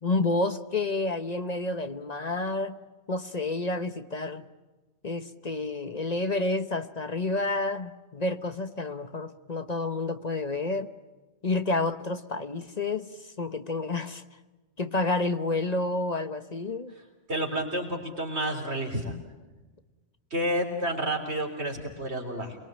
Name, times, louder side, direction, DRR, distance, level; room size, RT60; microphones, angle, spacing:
voice 1, 0.0-2.8 3.1-4.4 5.0-10.9 11.4-14.2 14.8-16.9, left 2 dB, 40° left, 11 dB, 1.1 m, -29 dB
voice 2, 17.3-19.2 20.3-22.6, right 1 dB, 75° right, 2 dB, 3.9 m, -30 dB
28.0 x 22.5 x 8.9 m, 1.2 s
omnidirectional pair, 1.1 m